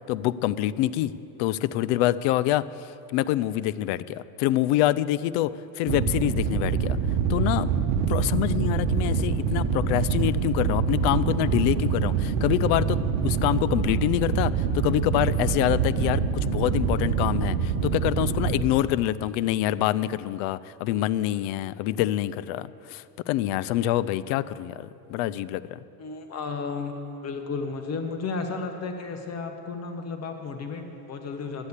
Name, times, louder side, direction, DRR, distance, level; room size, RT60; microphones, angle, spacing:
voice 1, 0.1-1.1 1.4-7.0 7.3-7.7 8.1-25.8, left 14 dB, 60° left, 17 dB, 0.5 m, -26 dB
sound 1, 5.9-18.6, right 6 dB, 60° right, 1.1 m, -25 dB
voice 2, 26.0-31.7, left 4 dB, 35° left, 5 dB, 1.1 m, -33 dB
11.5 x 9.7 x 8.2 m, 2.8 s
supercardioid pair, 120°, 46 cm